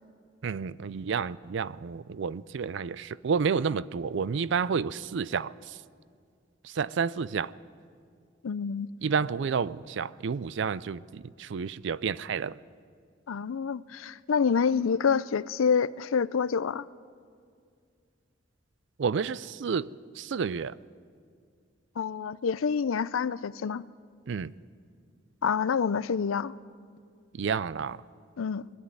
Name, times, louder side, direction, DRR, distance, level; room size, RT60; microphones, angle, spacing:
voice 1, 0.4-5.8 6.6-7.5 9.0-12.6 19.0-20.8 24.3-24.5 27.3-28.0, right 6 dB, 60° right, 0.4 m, -30 dB
voice 2, 8.4-8.9 13.3-16.9 22.0-23.9 25.4-26.5 28.4-28.7, left 6 dB, 85° left, 0.5 m, -27 dB
20.5 x 13.0 x 9.8 m
head